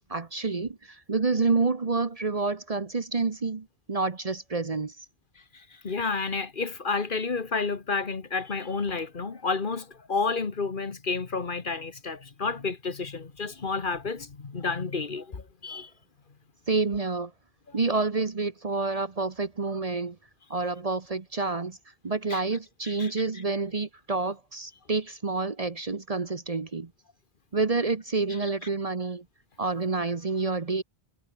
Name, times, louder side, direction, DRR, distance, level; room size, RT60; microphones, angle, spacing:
voice 1, 0.1-5.0 16.7-17.3 17.7-20.2 20.5-21.8 22.0-26.9 27.5-29.2 29.6-30.8, right 3 dB, 35° right, 1.1 m, -28 dB
voice 2, 5.5-15.9 22.3-22.4 22.8-23.1, left 4 dB, 55° left, 1.6 m, -30 dB
omnidirectional pair, 1.1 m